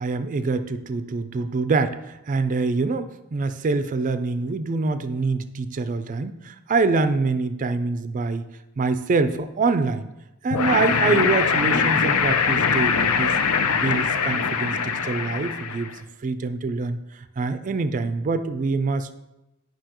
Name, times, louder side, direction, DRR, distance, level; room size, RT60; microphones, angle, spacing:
voice 1, 0.0-8.4 8.8-10.1 10.4-13.3 13.8-15.9 16.2-19.1, right 3 dB, 35° right, 11 dB, 0.4 m, -25 dB
sound 1, 10.5-15.9, left 6 dB, 75° left, 0.6 m, -22 dB
9.9 x 5.3 x 3.0 m, 0.95 s
head